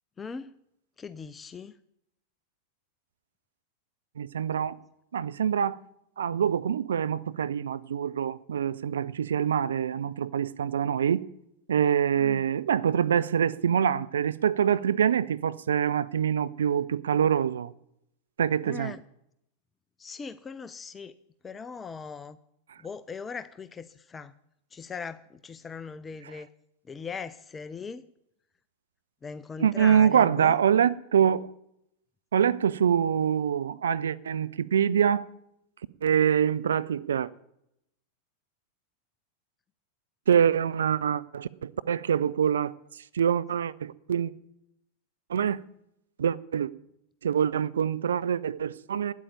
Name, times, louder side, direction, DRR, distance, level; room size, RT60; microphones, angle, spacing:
voice 1, 0.2-0.5 1.0-1.7 12.1-12.4 18.6-19.0 20.0-21.2 21.4-22.4 22.8-24.3 24.7-26.5 26.9-28.0 29.2-30.5, left 5 dB, 20° left, 0.4 m, -39 dB
voice 2, 4.2-4.8 5.1-5.8 6.2-11.2 11.7-17.7 18.4-18.9 22.7-22.8 26.2-26.3 29.6-31.5 32.3-35.2 36.0-37.3 40.3-44.3 45.3-45.6 46.2-46.7 47.2-49.1, right 8 dB, 65° right, 0.4 m, -25 dB
9.1 x 8.2 x 8.5 m
figure-of-eight pair, 90°, 0 cm